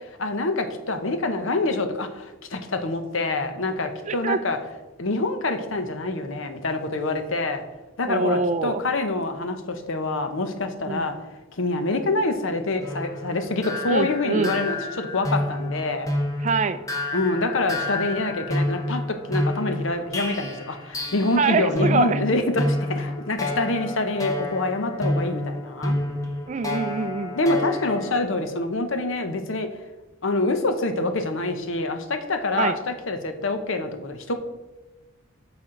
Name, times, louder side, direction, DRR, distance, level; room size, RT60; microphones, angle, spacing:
voice 1, 0.2-4.6 5.0-7.6 8.0-11.1 11.5-16.1 17.1-19.0 19.3-26.0 27.3-29.7 30.2-34.3, left 2 dB, 60° left, 7 dB, 0.8 m, -26 dB
voice 2, 4.1-4.4 8.1-8.8 10.9-11.2 13.9-14.6 16.4-16.8 21.4-22.3 26.5-27.4 32.6-32.8, right 4 dB, 35° right, 12 dB, 0.3 m, -24 dB
sound 1, 12.8-21.5 21.8-28.2, left 1 dB, 15° left, 0.9 m, -29 dB
8.5 x 6.1 x 3.8 m, 1.1 s
head